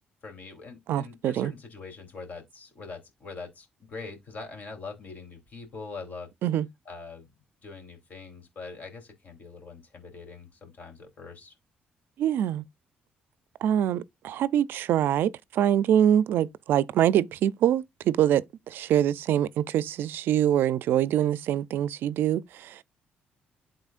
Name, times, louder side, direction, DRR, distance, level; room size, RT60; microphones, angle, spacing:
voice 1, 0.2-6.3 6.8-7.3 7.6-11.5, left 4 dB, 50° left, 3.4 m, -43 dB
voice 2, 0.9-1.5 6.4-6.7 12.2-12.6 13.6-22.8, right 10 dB, 80° right, 0.4 m, -24 dB
11.5 x 3.9 x 2.5 m
cardioid pair, 95°, 4 cm